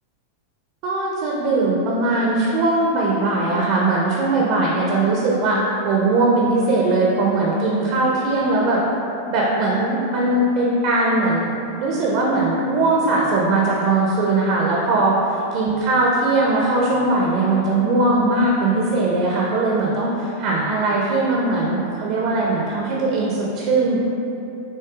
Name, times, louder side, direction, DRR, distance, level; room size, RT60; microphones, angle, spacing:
voice 1, 0.8-8.8 9.3-11.5 11.8-15.1 15.5-24.0, right 2 dB, 45° right, -3 dB, 0.6 m, -20 dB
7.0 x 2.6 x 2.3 m, 2.9 s
figure-of-eight pair, 90°, 0 cm